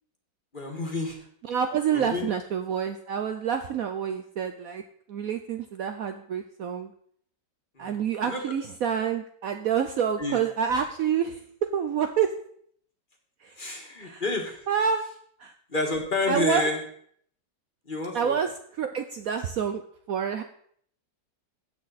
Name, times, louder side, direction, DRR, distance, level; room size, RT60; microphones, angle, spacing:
voice 1, 0.5-1.2 1.9-2.3 7.8-8.0 8.3-8.4 10.2-10.4 13.6-14.6 15.7-16.8 17.9-18.3, left 2 dB, 30° left, 1 dB, 1.8 m, -29 dB
voice 2, 1.4-4.8 5.1-6.9 7.8-12.3 13.4-13.6 14.0-14.2 14.7-15.0 15.4-15.5 16.3-16.7 18.1-19.8 20.1-20.4, right 7 dB, 65° right, 8 dB, 1.0 m, -28 dB
16.0 x 6.1 x 4.1 m, 0.62 s
omnidirectional pair, 1.9 m